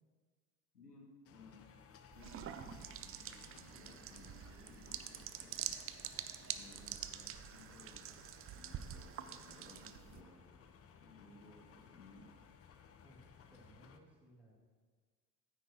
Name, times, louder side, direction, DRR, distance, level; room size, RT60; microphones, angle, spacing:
voice 1, 0.7-1.6 2.1-5.8 6.4-8.1 8.5-10.4 11.0-12.3, left 3 dB, 90° left, -1 dB, 1.3 m, -59 dB
sound 1, 1.2-14.0, left 7 dB, 30° left, 0.7 m, -61 dB
sound 2, 2.1-10.2, right 10 dB, 30° right, 0.5 m, -46 dB
voice 2, 13.0-14.5, right 1 dB, 5° right, -4 dB, 2.3 m, -62 dB
9.4 x 8.8 x 3.0 m, 1.5 s
figure-of-eight pair, 65°, 47 cm